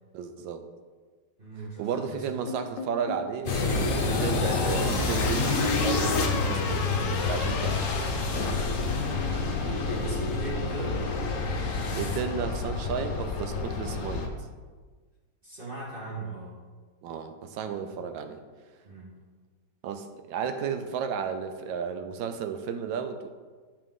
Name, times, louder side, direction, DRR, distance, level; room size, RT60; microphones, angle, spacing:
voice 1, 0.1-0.7 1.8-6.9 7.3-7.8 12.0-14.3 17.0-18.5 19.8-23.3, right 7 dB, 80° right, 8 dB, 1.3 m, -33 dB
voice 2, 1.4-2.4 9.8-11.0 15.4-16.6 18.8-19.1, right 2 dB, 30° right, -5 dB, 1.5 m, -38 dB
sound 1, 2.5-3.3 5.2-8.8, left 5 dB, 70° left, 1.3 m, -36 dB
sound 2, 3.5-14.3, left 3 dB, 55° left, 1.0 m, -28 dB
sound 3, 4.0-11.0, right 3 dB, 45° right, 1.3 m, -40 dB
10.0 x 4.8 x 3.6 m, 1.4 s
omnidirectional pair, 2.1 m